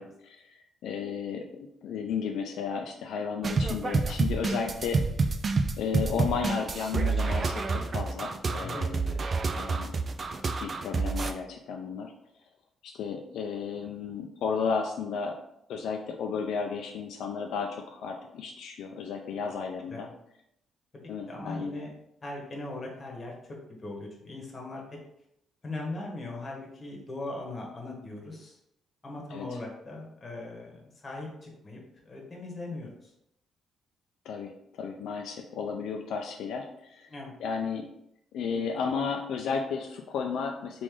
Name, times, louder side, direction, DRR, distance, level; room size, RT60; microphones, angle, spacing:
voice 1, 0.0-5.0 5.8-9.1 9.6-9.9 10.4-12.1 12.8-15.4 15.7-20.1 21.1-21.8 29.3-29.6 34.2-37.1 37.4-37.9 38.3-40.8, left 6 dB, 80° left, 2 dB, 0.3 m, -33 dB
sound 1, 3.4-11.3, right 4 dB, 40° right, 0.3 m, -28 dB
voice 2, 8.6-9.2 19.9-20.1 20.9-21.0 21.3-21.9 22.2-24.8 25.6-28.6 29.0-33.1 37.1-37.3, left 2 dB, 35° left, -1 dB, 1.1 m, -39 dB
3.1 x 2.5 x 3.6 m, 0.79 s
cardioid pair, 90°, 0 cm